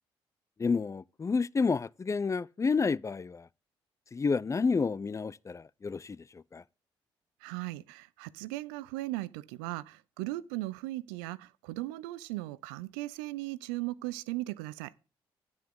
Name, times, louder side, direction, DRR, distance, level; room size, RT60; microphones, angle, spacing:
voice 1, 0.6-3.5 4.1-6.6, left 4 dB, 25° left, 0.4 m, -30 dB
voice 2, 7.4-14.9, right 18 dB, 90° right, 0.5 m, -37 dB
9.7 x 9.4 x 3.8 m
hypercardioid pair, 50°, 12 cm